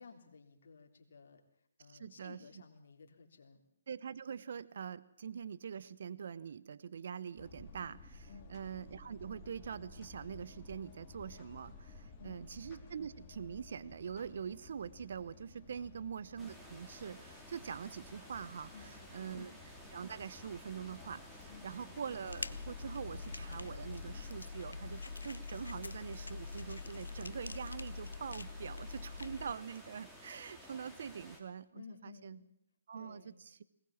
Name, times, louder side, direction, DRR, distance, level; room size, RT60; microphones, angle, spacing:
voice 1, 0.0-1.4 1.8-3.6 8.3-8.6 12.2-12.5 15.7-15.9 18.7-19.5 21.5-21.8 31.7-32.5 32.9-33.4, left 5 dB, 60° left, 4 dB, 3.5 m, -55 dB
voice 2, 1.9-2.4 3.9-19.5 19.9-32.4 32.9-33.6, right 7 dB, 55° right, 17 dB, 0.8 m, -44 dB
sound 1, 7.4-24.3, left 3 dB, 20° left, 3.1 m, -55 dB
sound 2, 16.4-31.4, equal, 5° right, 3.3 m, -55 dB
sound 3, 22.3-29.5, left 4 dB, 85° left, 0.8 m, -44 dB
20.5 x 18.5 x 7.3 m, 0.76 s
figure-of-eight pair, 140°, 0 cm